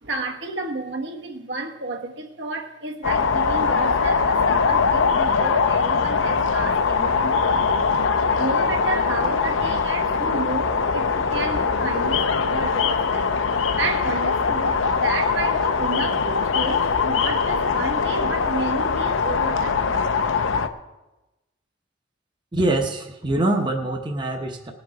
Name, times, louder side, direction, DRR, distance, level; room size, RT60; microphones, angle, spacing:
voice 1, 0.0-7.9 8.4-13.4 13.8-20.0, right 3 dB, 65° right, 1.3 m, -31 dB
sound 1, 3.0-20.7, left 5 dB, 85° left, 0.7 m, -22 dB
voice 2, 22.5-24.7, right 2 dB, 25° right, 0.9 m, -24 dB
19.0 x 6.5 x 4.8 m
head